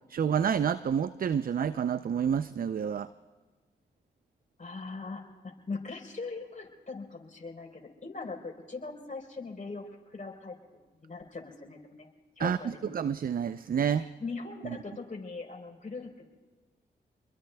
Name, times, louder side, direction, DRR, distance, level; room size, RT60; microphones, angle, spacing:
voice 1, 0.1-3.1 12.4-14.1, right 8 dB, 50° right, 14 dB, 0.5 m, -29 dB
voice 2, 4.6-12.1 12.4-12.9 14.2-16.3, left 3 dB, 40° left, 1 dB, 3.9 m, -41 dB
27.5 x 22.0 x 2.3 m, 1.3 s
supercardioid pair, 40°, 19 cm